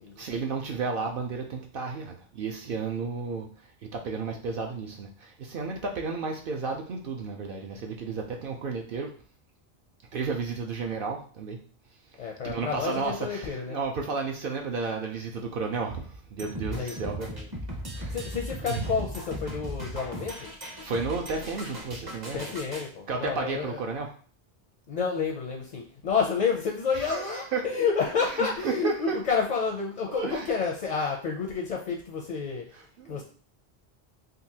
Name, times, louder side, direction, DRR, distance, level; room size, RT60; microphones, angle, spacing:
voice 1, 0.2-3.5 3.8-9.1 10.1-11.6 12.4-17.3 17.9-18.2 18.6-18.9 20.8-22.5 23.1-24.1 26.9-27.6 28.4-29.2 30.1-30.5 32.7-33.2, right 4 dB, 65° right, 2 dB, 0.7 m, -32 dB
voice 2, 12.2-13.8 16.7-17.5 18.1-20.5 22.3-23.8 24.9-32.7 33.1-33.2, left 5 dB, 55° left, 1 dB, 0.5 m, -30 dB
sound 1, 16.4-22.9, equal, 25° right, 0.6 m, -38 dB
3.8 x 2.6 x 2.7 m, 0.43 s
omnidirectional pair, 1.1 m